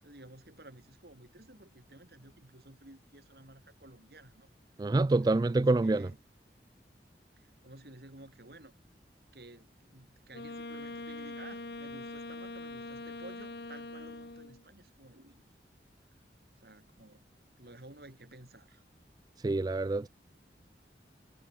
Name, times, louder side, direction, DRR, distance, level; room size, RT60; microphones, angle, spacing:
voice 1, 0.0-4.5 5.2-6.2 7.4-8.7 9.3-15.4 16.6-17.3 17.6-18.8, right 2 dB, 60° right, 3.0 m, -53 dB
voice 2, 4.8-6.1 19.4-20.1, right 2 dB, 20° right, 0.3 m, -26 dB
Wind instrument woodwind instrument, 10.3-14.7, left 2 dB, 65° left, 1.6 m, -43 dB
head